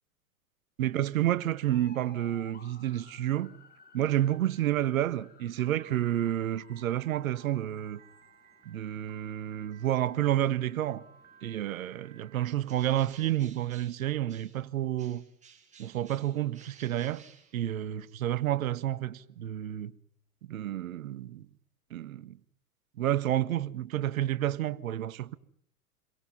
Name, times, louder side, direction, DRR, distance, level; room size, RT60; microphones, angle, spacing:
voice 1, 0.8-3.5 3.9-8.0 8.6-11.0 11.4-15.2 15.8-17.2 17.5-19.9 20.5-21.5 21.9-22.4 23.0-25.4, right 12 dB, 65° right, 1.5 m, -30 dB
sound 1, 1.7-12.4, left 4 dB, 20° left, 3.7 m, -58 dB
Piano, 5.6-12.6, right 8 dB, 40° right, 4.7 m, -59 dB
Bird, 12.6-14.7 15.0-18.0, right 6 dB, 15° right, 7.1 m, -57 dB
29.0 x 23.0 x 5.6 m
figure-of-eight pair, 95°, 44 cm